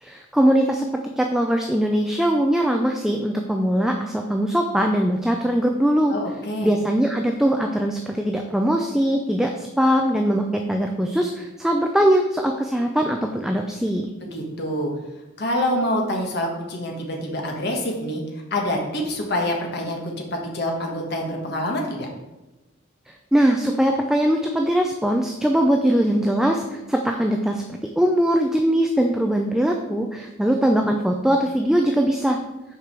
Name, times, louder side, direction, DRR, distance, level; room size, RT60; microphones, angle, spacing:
voice 1, 0.0-0.9 1.2-6.1 6.6-14.1 23.3-27.6 28.0-32.4, equal, ahead, 2 dB, 0.5 m, -21 dB
voice 2, 6.1-6.7 14.3-14.9 15.4-18.2 18.5-20.0 20.3-22.1, left 1 dB, 55° left, 0 dB, 1.4 m, -26 dB
6.7 x 4.9 x 6.1 m, 1.1 s
head